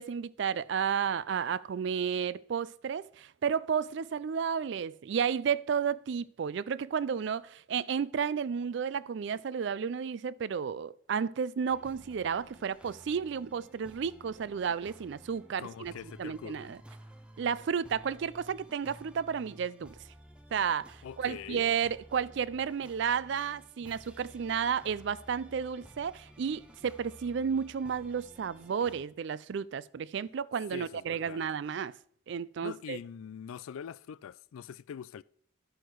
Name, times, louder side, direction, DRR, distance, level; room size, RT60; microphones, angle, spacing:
voice 1, 0.0-15.9 16.2-16.8 17.4-19.9 20.5-31.9 32.3-33.0, right 7 dB, 60° right, 0.3 m, -32 dB
sound 1, 11.7-29.0, equal, 5° right, 0.6 m, -54 dB
voice 2, 15.6-16.7 21.0-21.7 30.7-31.4 32.6-35.2, left 7 dB, 85° left, 0.3 m, -43 dB
11.5 x 6.3 x 4.6 m
head